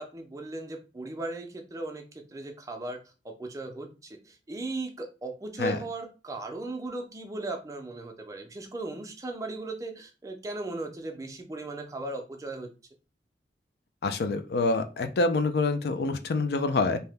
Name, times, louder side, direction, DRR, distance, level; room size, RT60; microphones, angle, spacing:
voice 1, 0.0-12.7, right 2 dB, 20° right, 4 dB, 0.4 m, -37 dB
voice 2, 14.0-17.0, left 3 dB, 65° left, 9 dB, 0.4 m, -26 dB
2.8 x 2.1 x 3.3 m, 0.31 s
head